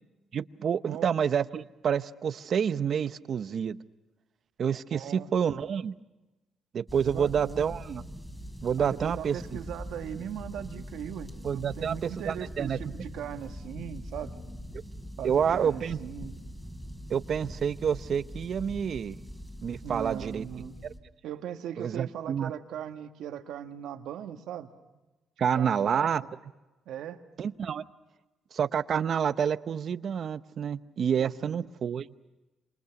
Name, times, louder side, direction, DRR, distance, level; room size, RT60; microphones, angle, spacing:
voice 1, 0.3-3.8 4.6-5.9 6.7-8.0 8.6-9.6 11.4-12.8 15.2-16.0 17.1-19.2 19.6-20.5 21.8-22.5 25.4-26.2 27.4-27.8 28.5-32.1, right 7 dB, 50° right, 13 dB, 0.8 m, -28 dB
voice 2, 4.9-5.3 7.1-7.7 8.8-14.3 15.2-16.3 19.8-20.7 21.2-24.7 25.5-26.3 26.9-27.2 31.2-31.7, right 9 dB, 85° right, 6 dB, 1.7 m, -39 dB
sound 1, 6.9-21.0, equal, 5° left, 3.4 m, -42 dB
27.5 x 27.5 x 5.9 m, 1.1 s
cardioid pair, 120°, 0 cm